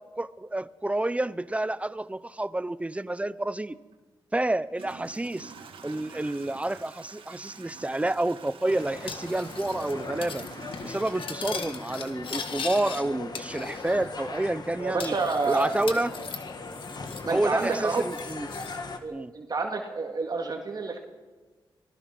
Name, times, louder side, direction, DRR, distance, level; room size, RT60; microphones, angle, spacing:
voice 1, 0.2-3.8 4.3-5.5 5.8-10.4 10.8-15.1 15.5-16.1 17.3-18.5 19.1-19.3, right 2 dB, 15° right, 17 dB, 0.7 m, -29 dB
Toilet flush / Trickle dribble, 3.9-4.0 4.7-12.5, right 5 dB, 90° right, 2.4 m, -47 dB
sound 1, 8.6-19.0, left 3 dB, 50° left, 2.0 m, -39 dB
Cutlery silverware, 9.1-9.9 10.2-10.5 10.7-13.0 13.3-14.1 14.3-14.4 15.0-17.3 17.6-18.8, left 6 dB, 80° left, 1.9 m, -39 dB
voice 2, 14.8-15.7 17.2-18.0 19.0-21.0, right 4 dB, 50° right, 2 dB, 2.2 m, -29 dB
25.5 x 19.0 x 6.0 m, 1.3 s
cardioid pair, 90°, 9 cm